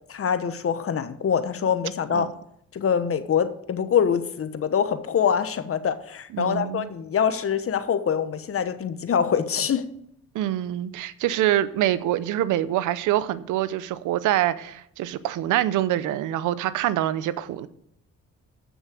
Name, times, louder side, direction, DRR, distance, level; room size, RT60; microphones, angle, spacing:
voice 1, 0.0-2.3 2.7-9.9, left 7 dB, 50° left, 1.1 m, -24 dB
voice 2, 6.3-6.9 10.3-17.7, right 13 dB, 90° right, 0.7 m, -25 dB
13.5 x 6.4 x 6.4 m
cardioid pair, 90°, 30 cm